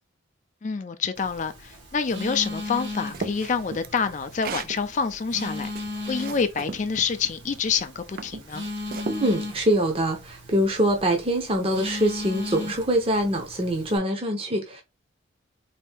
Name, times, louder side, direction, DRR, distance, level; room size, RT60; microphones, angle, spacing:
voice 1, 0.6-8.7, left 5 dB, 35° left, 0.4 m, -27 dB
Telephone, 1.1-14.0, left 2 dB, 70° right, 1.7 m, -37 dB
sound 1, 2.7-4.8 5.3-6.8 7.6-7.8 8.2-9.2, right 4 dB, 45° right, 0.3 m, -36 dB
voice 2, 9.1-14.8, right 1 dB, 30° right, 0.7 m, -24 dB
4.2 x 2.7 x 3.4 m
head